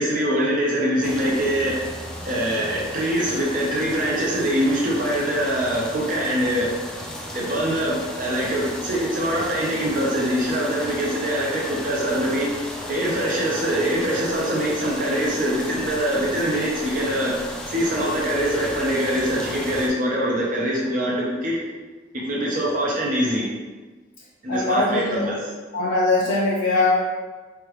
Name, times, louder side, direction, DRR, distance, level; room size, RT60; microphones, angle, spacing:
voice 1, 0.0-1.9 2.2-6.7 7.3-12.5 12.9-17.3 17.7-21.6 22.1-23.5 24.4-25.4, equal, 45° right, -4 dB, 0.7 m, -23 dB
sound 1, 1.0-19.9, equal, 5° left, 0.5 m, -35 dB
voice 2, 24.5-25.3 25.7-27.0, left 2 dB, 80° left, -6 dB, 0.7 m, -21 dB
4.6 x 3.4 x 3.0 m, 1.3 s
head